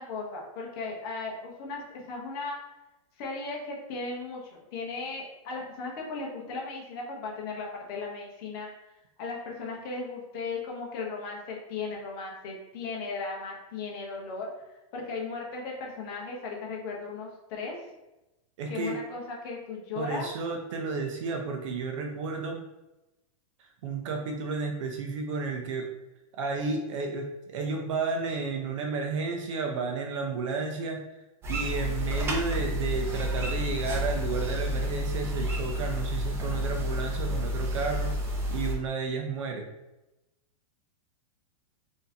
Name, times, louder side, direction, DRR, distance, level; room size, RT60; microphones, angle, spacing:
voice 1, 0.0-2.6 3.2-8.7 9.2-14.6 14.9-17.8 18.7-20.3, left 4 dB, 40° left, -2 dB, 0.8 m, -36 dB
voice 2, 18.6-19.0 20.0-22.6 23.8-25.9 26.3-31.0 31.5-38.1 38.5-39.7, right 4 dB, 60° right, 3 dB, 0.5 m, -32 dB
sound 1, 31.4-38.7, equal, 15° right, 0.5 m, -30 dB
3.7 x 2.6 x 2.7 m, 0.97 s
supercardioid pair, 160°, 18 cm